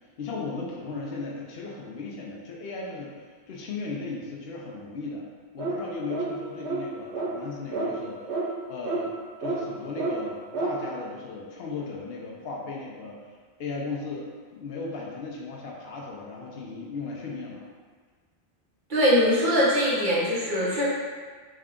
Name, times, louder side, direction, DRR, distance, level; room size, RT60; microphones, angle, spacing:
voice 1, 0.2-3.1 3.5-5.2 5.5-8.4 8.7-13.2 13.6-17.6, left 3 dB, 70° left, -2 dB, 0.8 m, -36 dB
sound 1, 5.6-5.8 6.1-6.3 6.6-6.8 7.1-7.3 7.7-7.9 8.3-8.4 8.8-9.0 9.4-9.6 10.0-10.1 10.5-10.7, right 3 dB, 90° right, 1.1 m, -29 dB
voice 2, 18.9-20.9, equal, 50° right, -8 dB, 1.0 m, -22 dB
3.6 x 2.3 x 3.5 m, 1.5 s
omnidirectional pair, 1.1 m